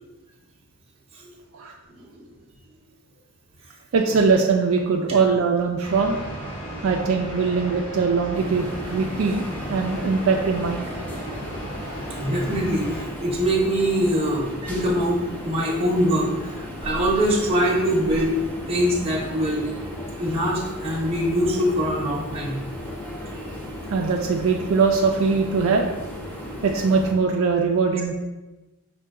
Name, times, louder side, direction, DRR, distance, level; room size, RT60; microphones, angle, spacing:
voice 1, 1.9-2.3 4.1-4.2 12.1-22.6, equal, 25° right, -3 dB, 0.8 m, -24 dB
voice 2, 3.9-6.2 6.8-10.9 23.9-25.9 26.6-28.1, right 4 dB, 65° right, 2 dB, 0.3 m, -21 dB
sound 1, 5.8-13.1, right 1 dB, 25° left, 1.2 m, -35 dB
sound 2, 8.3-27.1, left 1 dB, 10° left, 0.5 m, -35 dB
5.5 x 2.2 x 3.6 m, 1.1 s
head